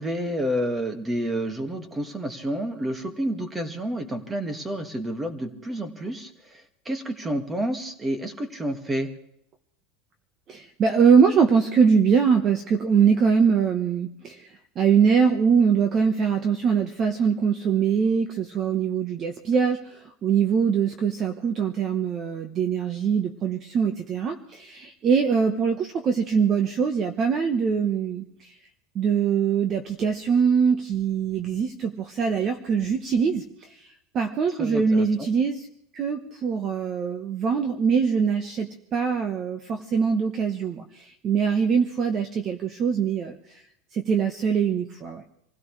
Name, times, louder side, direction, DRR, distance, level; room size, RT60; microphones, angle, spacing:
voice 1, 0.0-9.1 34.5-35.3, right 1 dB, 10° right, 7 dB, 1.8 m, -29 dB
voice 2, 10.5-14.5 14.7-28.5 28.9-33.8 34.1-35.7 35.9-43.6 43.9-45.2, right 6 dB, 30° right, 6 dB, 1.1 m, -23 dB
26.5 x 16.5 x 3.3 m, 0.76 s
supercardioid pair, 155°, 0 cm